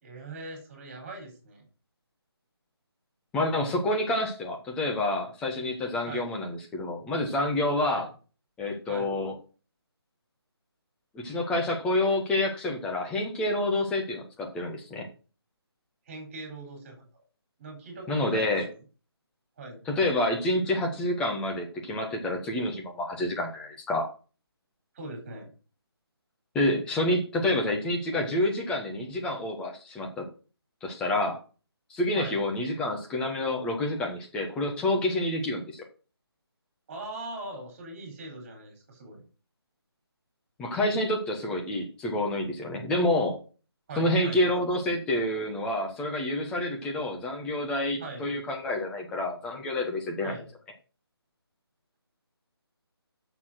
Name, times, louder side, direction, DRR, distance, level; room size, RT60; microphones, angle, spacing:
voice 1, 0.0-1.6 6.0-6.3 7.8-8.1 8.9-9.1 16.1-17.0 17.6-18.5 19.6-19.8 24.9-25.5 32.1-32.4 36.9-39.2 43.9-44.4 48.0-48.3 50.2-50.5, right 2 dB, 30° right, 3 dB, 4.4 m, -41 dB
voice 2, 3.3-8.0 8.6-9.3 11.1-15.1 18.1-18.7 19.9-24.1 26.5-30.3 30.8-31.4 31.9-35.8 40.6-43.4 44.0-50.3, left 1 dB, 5° left, 1 dB, 1.2 m, -28 dB
7.1 x 6.7 x 6.4 m, 0.36 s
figure-of-eight pair, 155°, 14 cm